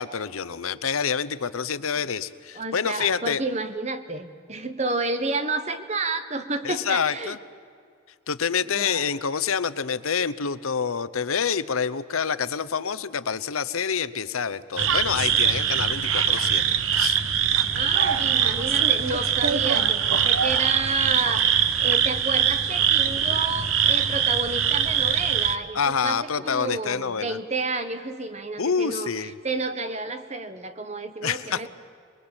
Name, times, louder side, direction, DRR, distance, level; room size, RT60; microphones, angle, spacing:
voice 1, 0.0-3.4 6.6-7.4 8.3-16.6 16.9-17.2 25.7-27.4 28.6-29.3 31.2-31.7, left 6 dB, 90° left, 15 dB, 0.8 m, -27 dB
voice 2, 2.5-7.4 8.7-9.0 17.7-21.4 21.8-31.7, right 3 dB, 30° right, 9 dB, 1.3 m, -31 dB
sound 1, 14.8-25.6, right 8 dB, 80° right, 1.2 m, -22 dB
26.0 x 21.0 x 8.9 m, 2.2 s
head